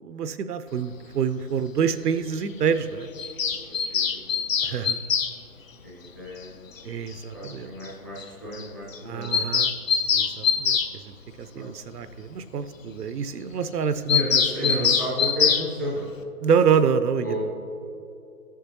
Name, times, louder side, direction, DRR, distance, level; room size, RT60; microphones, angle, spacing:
voice 1, 0.0-3.1 4.6-5.0 6.8-7.7 9.0-9.7 10.1-10.8 11.0-14.2 14.6-14.7 16.4-17.3, right 7 dB, 75° right, 12 dB, 0.6 m, -26 dB
Bird vocalization bird call bird song, 3.2-5.3 6.8-6.9 7.1-7.2 7.4-7.5 7.8-7.9 8.2-8.3 8.5-8.7 8.9-10.9 14.1-15.7, left 6 dB, 55° left, 0.7 m, -23 dB
voice 2, 3.5-4.4 5.8-6.7 7.3-9.4 11.4-11.7 14.0-16.1 17.2-17.4, left 1 dB, 15° left, -7 dB, 0.7 m, -32 dB
14.0 x 7.3 x 2.8 m, 2.8 s
hypercardioid pair, 170°, 47 cm